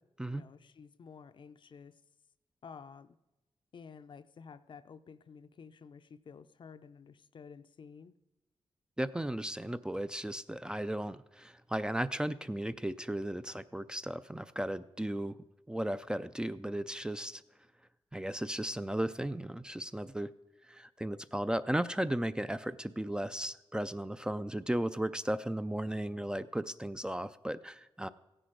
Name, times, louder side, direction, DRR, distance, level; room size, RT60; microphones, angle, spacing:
voice 1, 0.3-1.9 2.6-3.2 3.7-8.2, left 6 dB, 60° left, 12 dB, 0.6 m, -52 dB
voice 2, 9.0-15.4 15.7-17.4 18.1-20.3 20.7-28.1, right 1 dB, 10° right, 12 dB, 0.4 m, -35 dB
15.5 x 10.0 x 5.0 m, 1.0 s
wide cardioid pair, 120°, 9 cm